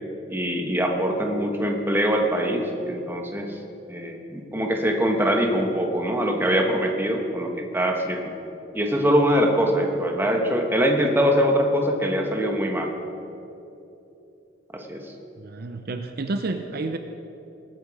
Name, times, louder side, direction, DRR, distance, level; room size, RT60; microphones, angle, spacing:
voice 1, 0.3-3.6 3.9-8.3 8.7-12.9 14.7-15.1, equal, 10° right, 2 dB, 1.2 m, -23 dB
voice 2, 15.4-17.0, right 3 dB, 55° right, 7 dB, 0.6 m, -30 dB
19.0 x 9.2 x 4.8 m, 2.9 s
head